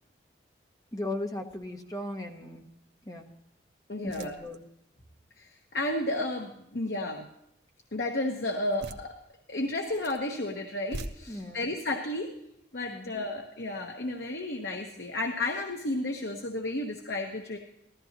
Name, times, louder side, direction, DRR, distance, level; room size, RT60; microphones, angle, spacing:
voice 1, 0.9-2.6 3.1-3.3 4.0-4.6 11.3-11.6 12.9-13.1, left 1 dB, 20° left, 2 dB, 1.2 m, -37 dB
sound 1, 1.5-1.9 2.4-2.5 4.0-4.6 8.7-9.1 9.8-10.2 10.8-11.1, right 1 dB, 70° right, 0.9 m, -42 dB
voice 2, 3.9-4.4 5.4-7.3 7.9-9.2 9.5-12.3 12.7-17.6, left 1 dB, 70° left, 2 dB, 1.1 m, -32 dB
15.0 x 14.0 x 2.9 m, 0.78 s
head